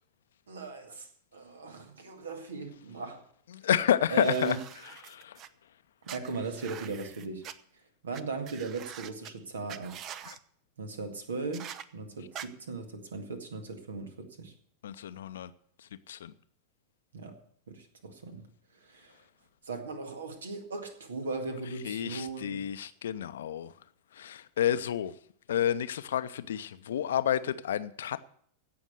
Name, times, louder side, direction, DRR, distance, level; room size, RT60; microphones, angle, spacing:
voice 1, 0.5-3.2 4.1-4.6 6.0-7.5 8.0-10.0 10.8-14.5 17.1-17.4 17.7-19.2 19.6-22.7, right 4 dB, 70° right, 1.9 m, -38 dB
voice 2, 3.6-4.5 5.1-5.4 14.8-15.5 16.1-16.3 21.8-23.7 24.2-25.1 25.5-28.2, left 10 dB, 60° left, 0.7 m, -30 dB
sound 1, 4.1-5.5 6.1-7.5 8.1-8.2 8.5-9.3 9.7-10.4 11.5-11.8 12.3-12.5, right 9 dB, 35° right, 0.7 m, -44 dB
16.5 x 6.3 x 8.0 m
figure-of-eight pair, 90°, 0 cm